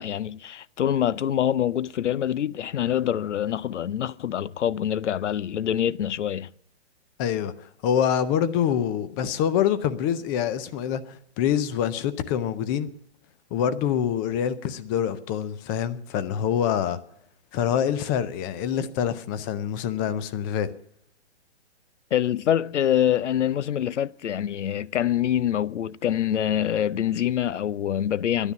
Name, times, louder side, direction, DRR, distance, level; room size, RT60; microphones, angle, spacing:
voice 1, 0.0-6.5 22.1-28.5, left 10 dB, 90° left, 0.6 m, -25 dB
voice 2, 7.2-12.9 13.5-17.0 17.5-20.7, left 9 dB, 20° left, 0.5 m, -26 dB
11.5 x 9.8 x 9.3 m
hypercardioid pair, 140°, 34 cm